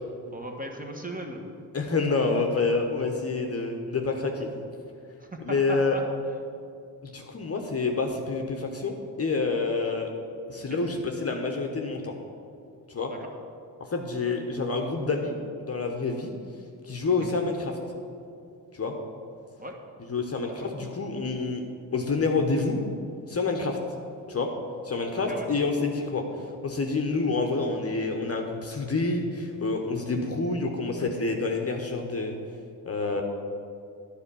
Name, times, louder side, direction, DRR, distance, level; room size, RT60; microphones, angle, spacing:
voice 1, 0.3-1.4 5.2-6.0 10.7-10.8 13.1-13.3 17.2-17.3 19.6-19.7 20.5-20.7 25.3-25.5, right 1 dB, 15° right, 2 dB, 1.3 m, -37 dB
voice 2, 1.7-4.5 5.4-6.0 7.0-10.1 10.5-12.1 12.9-13.1 13.9-15.3 15.6-16.3 16.9-17.7 18.7-18.9 20.1-21.6 21.9-22.8 23.3-23.8 24.3-24.5 24.8-26.2 26.6-32.3 32.8-33.2, left 3 dB, 30° left, 3 dB, 1.0 m, -28 dB
9.7 x 4.4 x 7.0 m, 2.4 s
hypercardioid pair, 50°, 49 cm